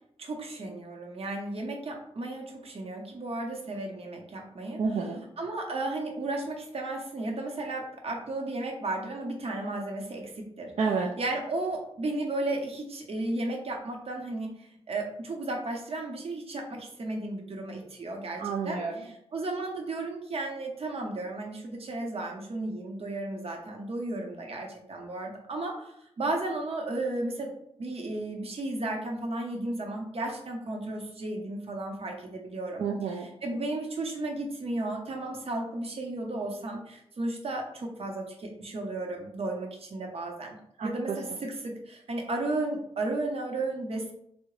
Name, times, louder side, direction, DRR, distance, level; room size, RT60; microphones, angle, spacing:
voice 1, 0.2-4.8 5.4-10.7 11.2-27.5 27.8-32.9 33.4-44.1, right 2 dB, 60° right, 1 dB, 0.7 m, -34 dB
voice 2, 4.8-5.2 10.8-11.1 18.4-19.1 32.8-33.3 40.8-41.2, right 5 dB, 90° right, -1 dB, 0.4 m, -30 dB
3.6 x 2.0 x 3.1 m, 0.74 s
wide cardioid pair, 80°, 11 cm